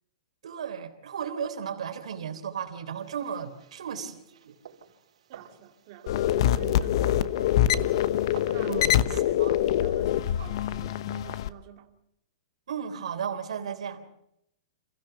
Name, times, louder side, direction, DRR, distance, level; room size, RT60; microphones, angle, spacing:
voice 1, 0.4-4.5 8.6-9.6 12.7-14.0, right 7 dB, 90° right, 3.6 m, -35 dB
sound 1, 3.0-8.6, right 8 dB, 75° right, 4.9 m, -50 dB
voice 2, 5.3-7.5 8.3-9.4 9.8-12.0, right 11 dB, 40° right, 2.2 m, -47 dB
sound 2, 6.1-11.5, left 11 dB, 50° left, 0.9 m, -25 dB
27.5 x 16.5 x 6.9 m
supercardioid pair, 165°, 3 cm